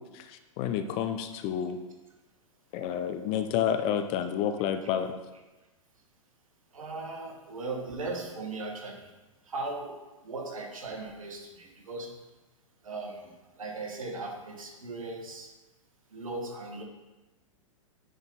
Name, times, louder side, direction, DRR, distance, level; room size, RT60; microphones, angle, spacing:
voice 1, 0.6-1.8 2.7-5.1, left 9 dB, 35° left, 9 dB, 0.5 m, -29 dB
voice 2, 6.7-9.1 9.4-10.0 10.2-12.2 12.8-15.5 16.1-16.8, right 3 dB, 70° right, 2 dB, 1.4 m, -38 dB
9.4 x 4.0 x 4.0 m, 1.1 s
figure-of-eight pair, 105°, 18 cm